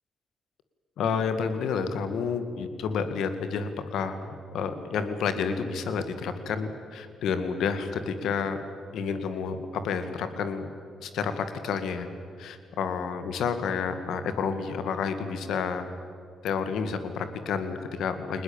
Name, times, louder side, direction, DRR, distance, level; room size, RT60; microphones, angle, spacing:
voice 1, 1.0-8.6 8.9-10.7 11.0-12.1 12.4-15.8 16.4-18.4, left 6 dB, 75° left, 9 dB, 2.0 m, -30 dB
23.0 x 20.0 x 9.0 m, 2.4 s
hypercardioid pair, 50°, 0 cm